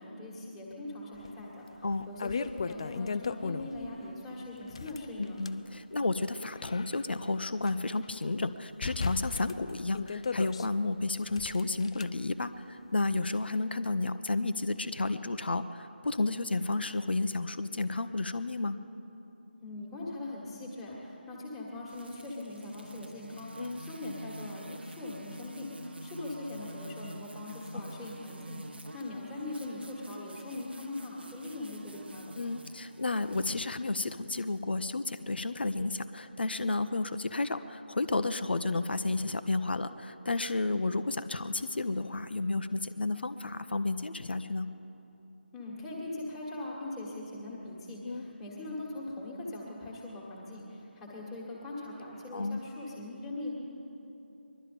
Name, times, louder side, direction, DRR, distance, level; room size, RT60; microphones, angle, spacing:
voice 1, 0.0-5.4 19.6-32.4 45.5-53.6, left 2 dB, 5° left, -6 dB, 1.8 m, -41 dB
sound 1, 1.2-1.3 1.8-3.9 4.6-5.6 6.3-7.7 8.0-8.1 8.8-10.7 11.3-12.0, left 5 dB, 30° left, 0.3 m, -36 dB
voice 2, 5.2-18.8 23.6-23.8 32.4-44.7 48.0-48.2 52.3-52.6, left 3 dB, 60° left, 11 dB, 0.7 m, -32 dB
sound 2, 21.9-34.6, right 1 dB, 65° right, 1.1 m, -48 dB
21.0 x 12.0 x 5.1 m, 2.9 s
figure-of-eight pair, 160°, 6 cm